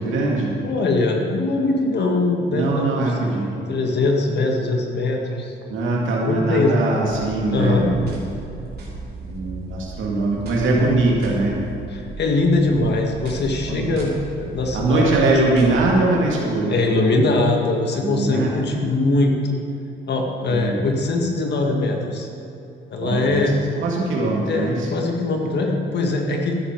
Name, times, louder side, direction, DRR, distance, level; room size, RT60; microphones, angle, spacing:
voice 1, 0.0-0.5 2.5-3.5 5.7-8.1 9.2-11.6 13.7-13.9 14.7-16.8 17.9-18.6 20.5-20.8 23.0-24.9, right 2 dB, 80° right, -2 dB, 2.4 m, -21 dB
voice 2, 0.6-3.1 3.7-5.5 6.2-6.8 7.5-7.9 11.9-15.2 16.7-19.6 20.1-22.3 22.9-23.5 24.5-26.6, left 2 dB, 60° left, 1 dB, 1.7 m, -21 dB
sound 1, 7.1-15.9, right 3 dB, 50° right, 3.2 m, -36 dB
13.0 x 10.0 x 4.6 m, 2.7 s
cardioid pair, 90°, 20 cm